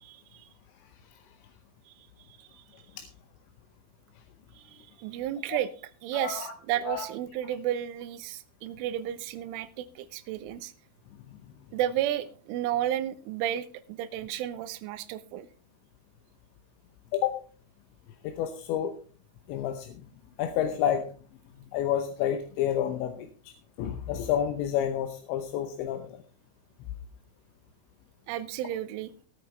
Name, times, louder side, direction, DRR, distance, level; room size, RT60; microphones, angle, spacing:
voice 1, 0.0-0.5 1.9-2.0 2.4-2.6 4.5-5.7 6.0-10.7 11.7-15.5 28.3-29.1, right 12 dB, 80° right, 13 dB, 3.2 m, -32 dB
voice 2, 6.1-6.5 6.9-7.1 17.1-17.4 18.2-19.0 19.5-20.1 20.4-21.1 21.7-26.2, left 10 dB, 75° left, 6 dB, 2.9 m, -30 dB
18.5 x 9.1 x 3.3 m, 0.39 s
omnidirectional pair, 5.9 m